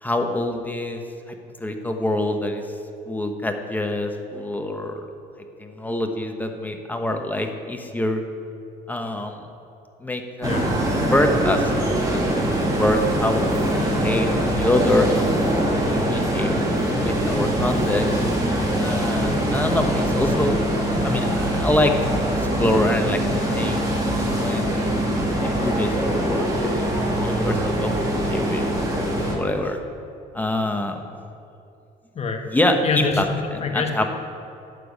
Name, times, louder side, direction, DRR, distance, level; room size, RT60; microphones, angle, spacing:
voice 1, 0.0-1.0 1.6-2.6 3.1-5.0 5.6-8.2 8.9-9.5 10.0-10.5 11.1-15.3 15.7-16.5 17.0-18.1 18.8-20.6 21.0-21.9 22.4-23.2 23.6-23.8 24.4-25.0 25.4-26.9 27.2-27.9 28.3-28.7 29.3-29.8 30.3-31.0 32.5-33.2 33.7-34.0, left 1 dB, 10° left, 4 dB, 1.1 m, -25 dB
sound 1, 10.4-29.3, right 1 dB, 20° right, 2.3 m, -23 dB
sound 2, 14.1-26.4, left 5 dB, 85° left, 1.4 m, -39 dB
voice 2, 32.8-34.0, left 5 dB, 40° left, 4 dB, 1.3 m, -26 dB
9.3 x 6.9 x 8.2 m, 2.6 s
cardioid pair, 110°, 17 cm